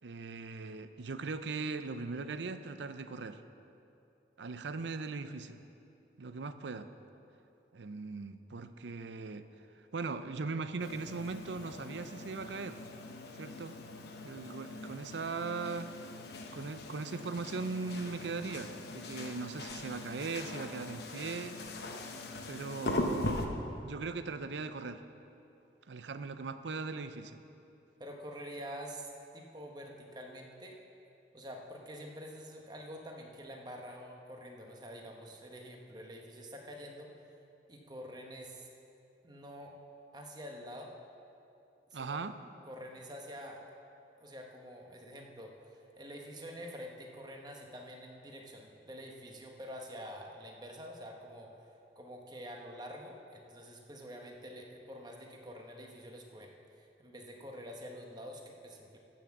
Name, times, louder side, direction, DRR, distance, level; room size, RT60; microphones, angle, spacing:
voice 1, 0.0-3.4 4.4-5.6 6.2-6.9 7.7-9.5 9.9-12.8 13.4-13.8 14.2-15.9 16.5-21.6 22.5-23.5 23.8-25.0 25.9-27.4 41.9-42.4, right 4 dB, 80° right, 11 dB, 0.6 m, -39 dB
sound 1, 10.8-23.5, left 2 dB, 65° left, 1.0 m, -41 dB
voice 2, 28.0-29.1 29.3-30.8 31.3-37.1 37.7-38.7 39.2-39.8 40.1-40.9 41.9-42.2 42.7-43.6 44.2-59.0, equal, 25° right, 1 dB, 1.1 m, -47 dB
14.5 x 6.1 x 7.2 m, 2.8 s
head